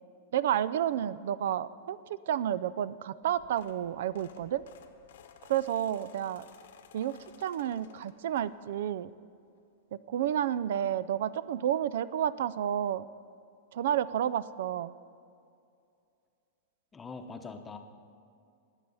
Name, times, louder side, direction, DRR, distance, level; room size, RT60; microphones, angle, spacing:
voice 1, 0.3-4.6 5.5-6.5 6.9-9.1 10.1-13.1 13.7-14.9, right 10 dB, 70° right, 18 dB, 0.4 m, -30 dB
sound 1, 3.2-8.9 9.3-9.6 10.8-10.9 11.1-11.3 11.6-11.7, left 8 dB, 80° left, 1.2 m, -56 dB
voice 2, 16.9-17.8, left 4 dB, 15° left, 6 dB, 0.9 m, -42 dB
21.0 x 8.3 x 5.5 m, 2.5 s
supercardioid pair, 150°, 0 cm